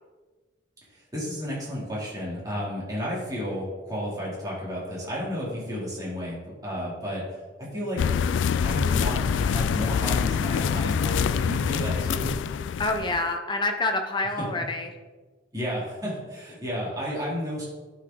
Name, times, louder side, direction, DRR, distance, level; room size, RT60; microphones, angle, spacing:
voice 1, 1.1-7.3 7.6-8.0 8.6-12.4 14.4-14.5 15.5-17.7, equal, 20° right, -6 dB, 2.9 m, -32 dB
sound 1, 8.0-13.2, left 7 dB, 85° left, 0.3 m, -25 dB
voice 2, 12.8-15.0, left 2 dB, 25° left, 5 dB, 0.8 m, -27 dB
11.5 x 5.0 x 3.9 m, 1.3 s
head